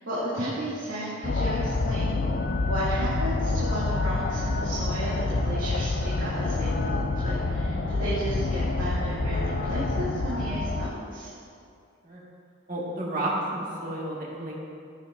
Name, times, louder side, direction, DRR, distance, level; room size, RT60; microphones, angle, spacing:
voice 1, 0.0-2.1 2.6-11.3, right 1 dB, 75° right, -11 dB, 2.6 m, -33 dB
sound 1, 1.2-10.9, left 3 dB, 50° left, 0.5 m, -27 dB
voice 2, 7.7-8.0 12.0-12.2 12.7-14.5, right 1 dB, 40° right, -4 dB, 1.9 m, -32 dB
16.0 x 8.3 x 2.7 m, 2.4 s
head